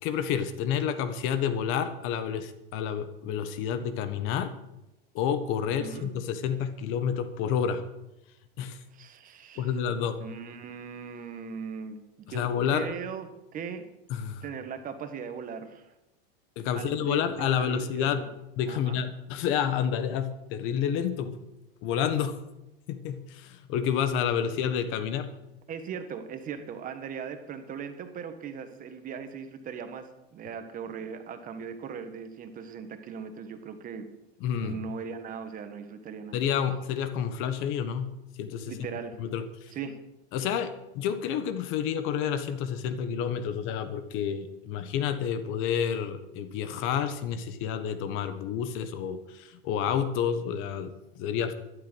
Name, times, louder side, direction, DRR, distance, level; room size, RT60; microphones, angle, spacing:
voice 1, 0.0-4.5 5.1-7.8 8.6-8.8 9.6-10.2 12.3-12.9 14.1-14.4 16.6-18.2 18.6-21.4 21.8-22.4 22.9-25.3 34.4-34.8 36.3-38.1 38.4-38.7 39.2-39.7 40.3-51.5, left 8 dB, 45° left, 11 dB, 1.3 m, -29 dB
voice 2, 5.6-6.1 8.9-9.7 10.2-12.0 12.3-12.4 12.7-13.3 13.5-13.8 14.4-15.9 16.7-18.3 18.7-19.0 25.7-34.1 34.4-36.4 38.7-39.2 39.7-40.0, right 6 dB, 30° right, 8 dB, 1.5 m, -39 dB
12.5 x 11.5 x 6.3 m, 0.91 s
supercardioid pair, 140°, 29 cm